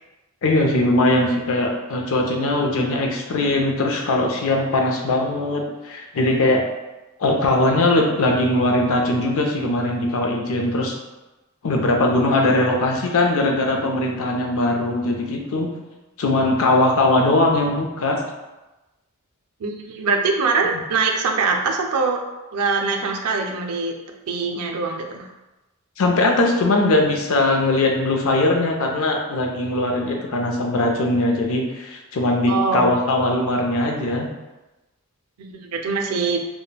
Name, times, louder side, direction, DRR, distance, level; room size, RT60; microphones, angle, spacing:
voice 1, 0.4-6.6 7.2-10.9 11.6-15.7 16.2-18.2 26.0-34.3, left 2 dB, 65° left, 2 dB, 0.5 m, -20 dB
voice 2, 19.6-22.2 22.5-23.9 24.3-25.2 32.5-32.9 35.4-36.4, right 4 dB, 85° right, 2 dB, 0.4 m, -23 dB
3.2 x 2.1 x 2.2 m, 1.0 s
head